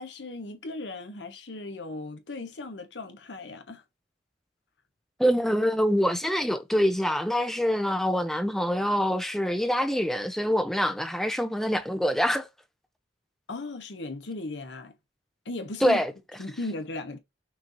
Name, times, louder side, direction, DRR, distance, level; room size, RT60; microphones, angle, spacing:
voice 1, 0.0-3.8 13.5-14.9 15.4-16.0 16.4-17.2, left 2 dB, 80° left, 1.0 m, -37 dB
voice 2, 5.2-12.5 15.8-16.1, equal, ahead, 0.5 m, -25 dB
6.0 x 2.7 x 3.0 m
head